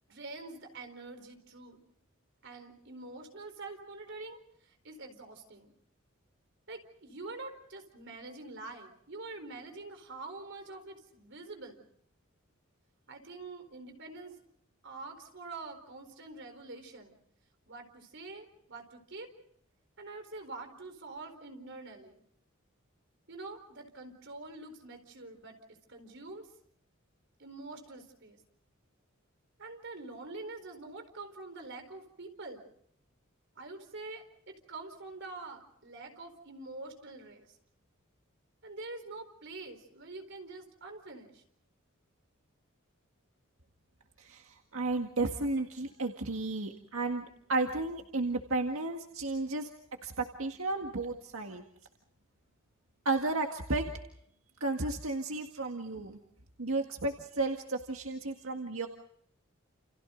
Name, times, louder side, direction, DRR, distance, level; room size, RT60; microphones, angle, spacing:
voice 1, 0.1-1.9 2.4-4.4 4.8-5.7 6.7-11.8 13.1-14.4 14.8-17.2 17.7-19.3 20.0-22.2 23.3-25.6 25.9-26.5 27.4-28.4 29.6-32.7 33.6-37.5 38.6-41.4, right 3 dB, 60° right, 6 dB, 4.4 m, -45 dB
voice 2, 44.7-47.2 47.5-49.7 50.0-51.6 53.1-53.9 54.6-56.2 56.6-58.9, right 2 dB, 90° right, 3 dB, 1.9 m, -33 dB
29.5 x 29.5 x 3.9 m, 0.68 s
head